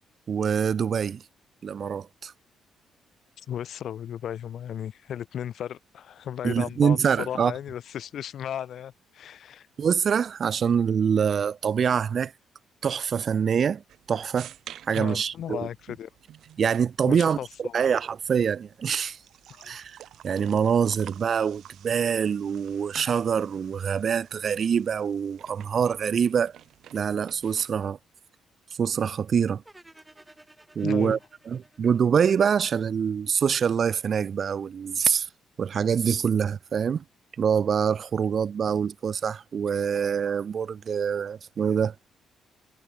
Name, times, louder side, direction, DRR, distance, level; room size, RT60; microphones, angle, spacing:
voice 1, 0.3-1.2 1.6-2.3 6.4-7.5 9.8-12.3 12.8-13.8 14.1-14.5 14.9-15.7 16.6-19.2 19.6-20.0 20.2-26.5 26.9-28.0 28.8-29.6 30.8-31.2 31.5-35.3 35.6-37.0 37.4-41.9, right 7 dB, 50° right, 0.3 m, -25 dB
voice 2, 3.5-9.7 14.9-16.1 17.1-17.8 19.5-19.8 30.8-31.2, left 10 dB, 65° left, 0.8 m, -35 dB
sound 1, 13.9-27.9, right 11 dB, 75° right, 3.0 m, -50 dB
sound 2, 29.6-32.8, right 1 dB, 10° right, 7.2 m, -55 dB
cardioid pair, 90°, 0 cm